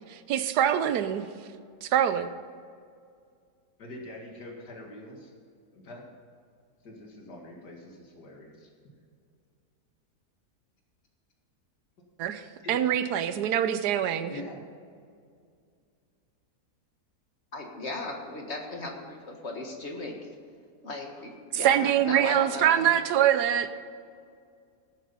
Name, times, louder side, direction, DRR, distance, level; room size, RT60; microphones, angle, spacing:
voice 1, 0.1-1.3 1.8-2.3 12.2-12.4 12.7-14.3 21.5-23.7, right 10 dB, 85° right, 12 dB, 1.3 m, -24 dB
voice 2, 3.8-5.3 5.7-6.0 6.8-8.7 12.6-12.7 14.3-14.6, left 1 dB, 80° left, 0 dB, 2.5 m, -44 dB
voice 3, 17.5-20.3 20.8-22.9, left 2 dB, 45° left, 2 dB, 1.9 m, -37 dB
18.0 x 7.5 x 5.4 m, 2.2 s
omnidirectional pair, 1.7 m